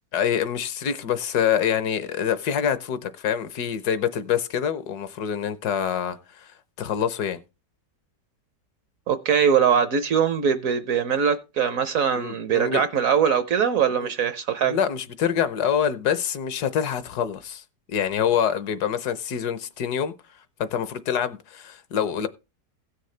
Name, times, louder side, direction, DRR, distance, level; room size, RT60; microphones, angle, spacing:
voice 1, 0.1-6.5 6.8-7.4 12.2-12.8 13.9-14.1 14.6-17.6 17.9-20.1 20.6-22.3, left 8 dB, 70° left, 1.3 m, -26 dB
voice 2, 9.1-14.8, right 7 dB, 60° right, 1.0 m, -22 dB
16.5 x 6.6 x 3.2 m
omnidirectional pair, 1.9 m